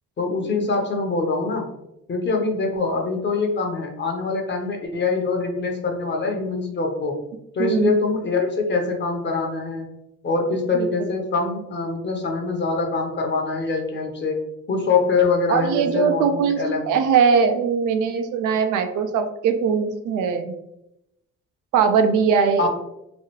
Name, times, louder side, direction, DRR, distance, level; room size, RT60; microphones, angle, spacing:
voice 1, 0.2-1.7 2.1-7.2 7.5-9.9 10.2-14.4 14.7-16.9 22.6-22.7, left 4 dB, 35° left, 2 dB, 0.8 m, -24 dB
voice 2, 7.6-7.9 10.7-10.9 15.5-20.6 21.7-22.7, right 6 dB, 85° right, 7 dB, 0.5 m, -20 dB
3.1 x 2.3 x 2.9 m, 0.85 s
cardioid pair, 90°, 30 cm